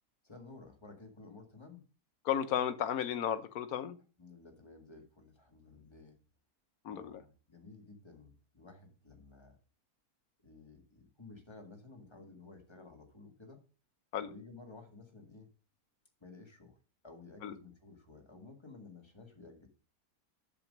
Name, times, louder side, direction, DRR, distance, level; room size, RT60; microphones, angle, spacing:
voice 1, 0.2-1.8 4.2-6.2 6.9-9.6 10.4-13.6 14.3-15.5 16.2-16.8 17.0-19.7, left 3 dB, 15° left, 3 dB, 1.8 m, -54 dB
voice 2, 2.2-4.0 6.8-7.2 14.1-14.3 17.4-17.5, left 9 dB, 70° left, 10 dB, 1.3 m, -34 dB
7.6 x 7.0 x 5.2 m, 0.35 s
omnidirectional pair, 1.6 m